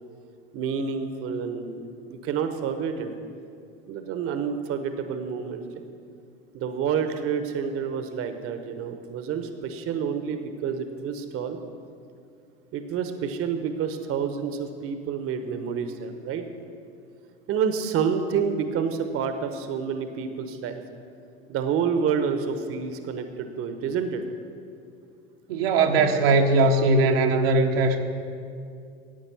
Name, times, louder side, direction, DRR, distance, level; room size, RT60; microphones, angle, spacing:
voice 1, 0.5-3.1 3.9-5.6 6.5-11.6 12.7-16.4 17.5-20.8 21.5-24.2, right 6 dB, 50° right, 8 dB, 1.0 m, -28 dB
voice 2, 25.5-28.0, right 3 dB, 75° right, 2 dB, 1.1 m, -20 dB
10.5 x 8.6 x 7.0 m, 2.4 s
hypercardioid pair, 80°, 30 cm